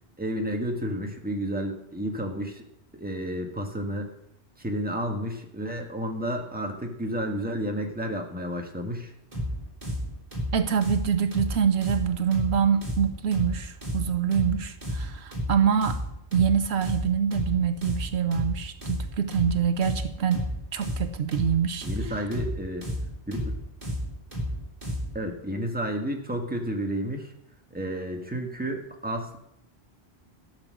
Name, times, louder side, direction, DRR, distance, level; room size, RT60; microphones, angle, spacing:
voice 1, 0.2-2.6 2.9-4.1 4.6-9.1 21.8-22.9 23.3-23.6 25.1-27.3 27.7-29.4, equal, 10° right, 2 dB, 1.5 m, -31 dB
sound 1, 9.3-25.2, equal, 40° right, 4.2 m, -32 dB
voice 2, 10.5-16.0 16.3-22.1, right 7 dB, 75° right, 10 dB, 0.9 m, -25 dB
13.5 x 6.5 x 6.3 m, 0.78 s
omnidirectional pair, 1.1 m